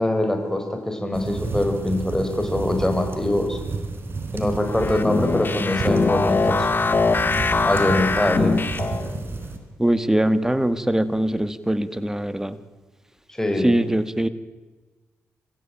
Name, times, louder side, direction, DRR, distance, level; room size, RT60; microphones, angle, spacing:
voice 1, 0.0-3.6 4.3-6.7 7.6-8.6 13.3-13.8, left 1 dB, 10° left, 4 dB, 5.4 m, -23 dB
sound 1, 1.1-9.6, right 4 dB, 45° right, 4.2 m, -31 dB
sound 2, 4.7-9.2, left 4 dB, 40° left, 1.9 m, -22 dB
voice 2, 9.8-12.6 13.6-14.3, right 1 dB, 10° right, 13 dB, 2.0 m, -22 dB
27.0 x 15.5 x 9.0 m, 1.2 s
supercardioid pair, 55°, 5 cm